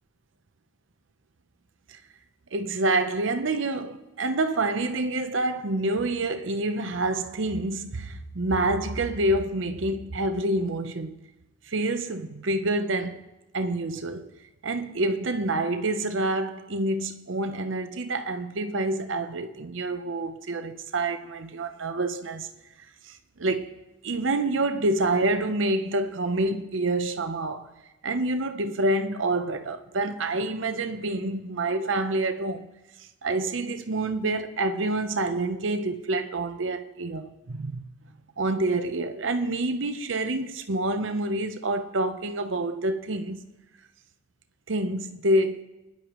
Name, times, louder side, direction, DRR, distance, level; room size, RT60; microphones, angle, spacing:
voice 1, 2.5-11.1 11.7-13.2 13.5-14.3 14.6-22.5 23.1-23.7 24.0-27.7 28.0-32.6 33.2-37.8 38.4-43.4 44.7-45.6, right 2 dB, 80° right, 0.8 m, -27 dB
25.0 x 10.5 x 3.1 m
head